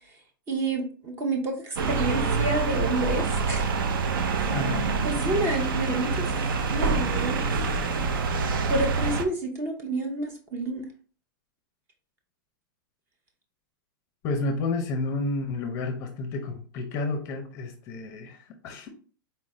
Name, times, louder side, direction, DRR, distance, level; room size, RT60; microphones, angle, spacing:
voice 1, 0.5-3.7 4.3-4.6 5.0-6.3 6.7-7.5 8.7-10.9, right 2 dB, 20° right, 3 dB, 0.6 m, -29 dB
sound 1, 1.8-9.2, right 4 dB, 70° right, 0.6 m, -26 dB
voice 2, 4.5-4.9 14.2-18.9, left 3 dB, 25° left, 4 dB, 0.6 m, -30 dB
4.2 x 2.5 x 3.1 m, 0.41 s
supercardioid pair, 165°, 12 cm